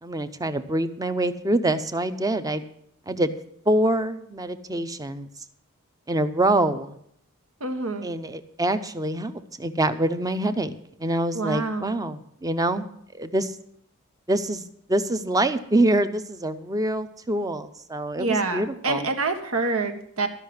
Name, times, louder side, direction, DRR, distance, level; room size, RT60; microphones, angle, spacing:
voice 1, 0.0-2.6 3.1-3.3 3.7-5.3 6.1-7.0 8.0-10.7 11.0-12.9 13.1-13.5 14.3-14.6 14.9-19.1, right 1 dB, 15° right, 11 dB, 0.7 m, -25 dB
voice 2, 7.6-8.1 11.3-11.9 18.2-20.3, right 3 dB, 80° right, 6 dB, 1.5 m, -27 dB
13.5 x 5.7 x 9.5 m, 0.71 s
head